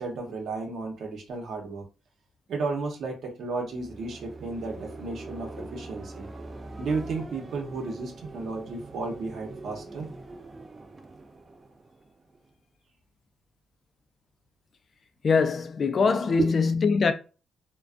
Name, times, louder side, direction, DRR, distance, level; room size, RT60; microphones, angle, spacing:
voice 1, 0.0-1.8 2.5-6.3 6.8-10.1 16.4-16.5, right 3 dB, 60° right, 0.8 m, -33 dB
sound 1, 3.5-12.5, right 2 dB, 30° right, 0.4 m, -43 dB
voice 2, 15.2-17.1, left 5 dB, 45° left, 0.4 m, -23 dB
2.4 x 2.2 x 2.4 m
cardioid pair, 90°, 0 cm